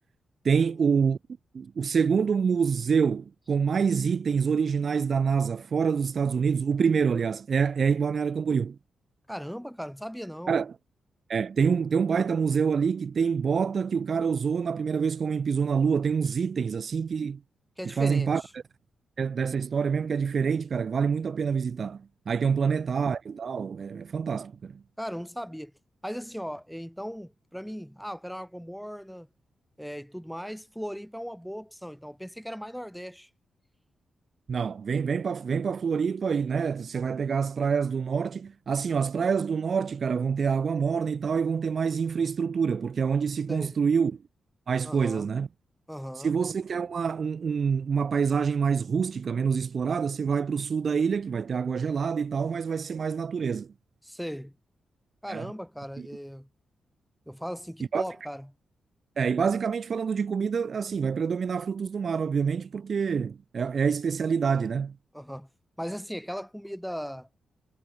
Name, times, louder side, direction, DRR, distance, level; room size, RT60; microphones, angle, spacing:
voice 1, 0.4-1.2 1.5-8.8 10.5-10.8 11.3-17.4 17.8-18.4 19.2-24.8 34.5-44.2 44.7-45.5 46.2-53.7 55.3-55.5 57.9-58.0 59.2-64.9, right 6 dB, 50° right, 0.8 m, -26 dB
voice 2, 9.3-10.6 17.8-18.5 22.4-22.7 25.0-25.7 26.0-29.3 29.8-33.3 43.5-43.8 44.8-45.3 45.9-46.3 54.0-54.5 55.2-56.5 57.3-58.5 65.1-65.5 65.8-67.3, equal, ahead, 4.4 m, -38 dB
cardioid pair, 110°, 0 cm